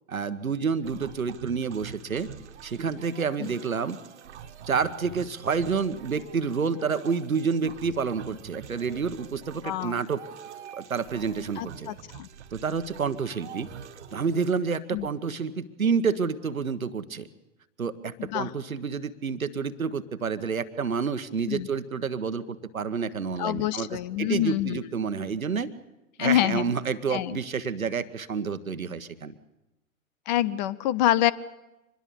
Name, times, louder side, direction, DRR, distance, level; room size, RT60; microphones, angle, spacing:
voice 1, 0.1-2.3 2.6-4.0 4.7-10.2 10.7-11.9 12.5-13.7 14.1-17.3 17.8-23.9 24.2-25.7 26.2-29.3, right 5 dB, 80° right, 12 dB, 1.3 m, -29 dB
sound 1, 0.8-14.6, right 8 dB, 55° right, 1.7 m, -45 dB
voice 2, 9.6-10.0 11.6-12.3 14.9-15.1 18.2-18.5 21.5-21.7 23.4-24.8 26.2-26.7 27.1-27.4 30.3-31.3, left 13 dB, 35° left, 20 dB, 0.8 m, -26 dB
25.0 x 21.0 x 7.0 m, 0.97 s
figure-of-eight pair, 110°, 41 cm